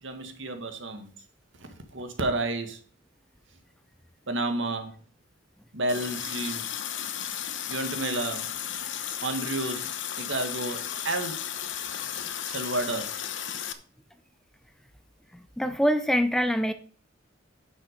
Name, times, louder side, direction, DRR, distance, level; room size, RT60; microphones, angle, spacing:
voice 1, 0.0-1.1 1.6-2.8 4.3-5.0 5.7-6.7 7.7-8.5 9.2-11.4 12.5-13.2, right 2 dB, 70° right, 6 dB, 2.0 m, -31 dB
Water tap faucet, 5.9-13.7, left 10 dB, 70° left, 1.0 m, -34 dB
voice 2, 15.6-16.7, equal, ahead, 10 dB, 0.6 m, -24 dB
10.5 x 6.3 x 5.2 m, 0.43 s
head